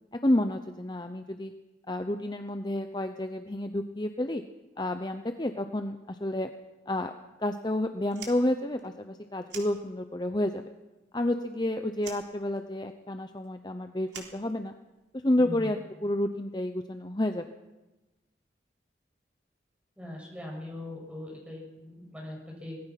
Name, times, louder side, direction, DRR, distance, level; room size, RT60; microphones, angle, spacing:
voice 1, 0.2-1.5 1.9-4.4 4.8-6.5 6.9-7.1 7.4-10.6 11.1-14.7 15.2-17.5, left 1 dB, 25° left, 7 dB, 0.8 m, -30 dB
Fire, 8.0-10.4 10.6-11.6 12.0-15.1, right 6 dB, 75° right, 3.8 m, -47 dB
voice 2, 15.4-15.7 20.0-22.8, left 1 dB, 5° right, -2 dB, 6.9 m, -41 dB
24.5 x 19.0 x 5.9 m, 1.1 s
head